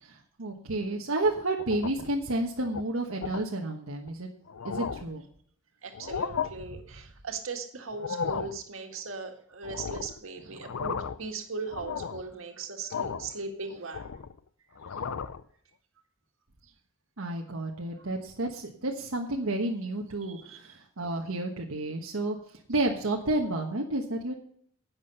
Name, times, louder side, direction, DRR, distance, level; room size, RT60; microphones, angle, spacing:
voice 1, 0.1-4.3 4.6-5.2 17.2-22.4 22.7-24.3, right 2 dB, 90° right, 0 dB, 1.3 m, -31 dB
sound 1, 1.6-2.2 2.6-2.8 3.2-3.4 4.1-4.2 4.5-5.2 5.9-6.5 7.9-8.6 9.6-10.2 10.6-11.3 11.7-12.3 12.9-13.3 13.7-14.4 14.8-15.4, left 6 dB, 80° left, 0.5 m, -35 dB
voice 2, 5.8-14.2 14.7-15.0 16.6-16.7 18.0-18.1 20.2-20.7, right 4 dB, 70° right, 4 dB, 2.0 m, -39 dB
11.5 x 8.6 x 5.5 m, 0.63 s
head